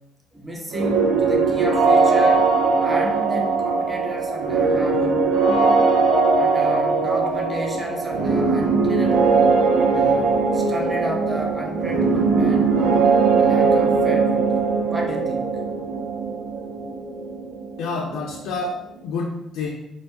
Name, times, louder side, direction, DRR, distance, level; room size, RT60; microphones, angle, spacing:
voice 1, 0.3-2.4 2.8-5.9 6.4-9.2 9.7-13.0 13.3-14.6 14.9-15.5, equal, 10° right, 0 dB, 0.4 m, -32 dB
sound 1, 0.7-18.4, right 4 dB, 65° right, 0.5 m, -20 dB
voice 2, 17.8-19.7, left 3 dB, 70° left, -2 dB, 0.4 m, -28 dB
2.8 x 2.5 x 3.3 m, 0.88 s
cardioid pair, 180°, 0 cm